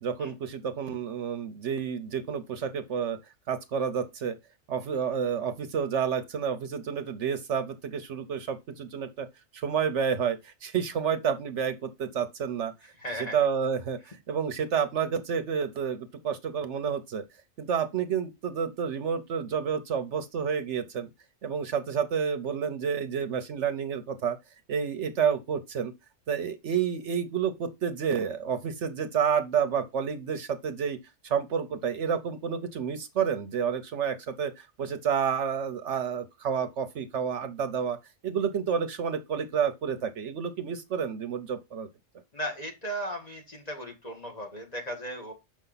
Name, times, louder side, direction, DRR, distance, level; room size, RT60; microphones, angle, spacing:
voice 1, 0.0-3.2 3.5-4.4 4.7-9.3 9.5-12.7 13.1-17.2 17.6-21.1 21.4-24.4 24.7-25.9 26.3-31.0 31.2-38.0 38.2-41.9, right 7 dB, 65° right, 1.0 m, -29 dB
voice 2, 13.0-13.4 42.3-45.3, equal, 30° left, 1.8 m, -36 dB
6.7 x 5.5 x 3.9 m
omnidirectional pair, 1.4 m